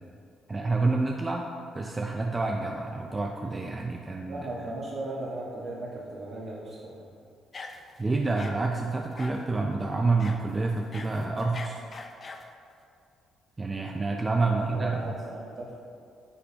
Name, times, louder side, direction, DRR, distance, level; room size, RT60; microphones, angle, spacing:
voice 1, 0.5-1.5 1.7-4.5 8.0-11.8 13.6-15.1, right 3 dB, 25° right, 1 dB, 0.5 m, -28 dB
voice 2, 4.3-7.0 14.4-15.9, right 2 dB, 65° right, -7 dB, 1.5 m, -37 dB
sound 1, 7.5-8.0 8.4-8.6 9.2-9.5 10.2-10.4 10.8-12.5, left 3 dB, 40° left, 0.6 m, -42 dB
10.0 x 6.6 x 2.9 m, 2.4 s
cardioid pair, 90°, 0 cm